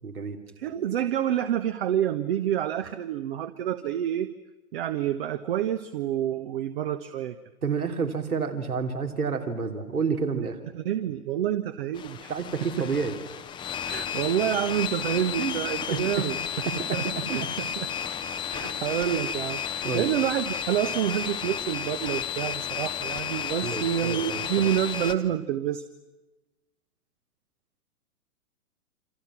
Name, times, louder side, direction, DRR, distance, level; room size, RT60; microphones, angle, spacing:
voice 1, 0.0-0.4 7.6-10.6 12.3-13.1 15.4-16.2 16.6-17.2 18.6-18.8 19.8-20.1 23.6-24.4, right 5 dB, 70° right, 4 dB, 3.3 m, -30 dB
voice 2, 0.6-4.3 4.7-7.4 10.3-12.3 12.8-12.9 13.8-16.4 16.9-17.9 18.5-25.8, right 11 dB, 40° right, 10 dB, 1.2 m, -28 dB
sound 1, 11.9-25.1, left 8 dB, 10° left, 0.9 m, -32 dB
28.0 x 27.0 x 6.0 m, 1.0 s
figure-of-eight pair, 110°, 45 cm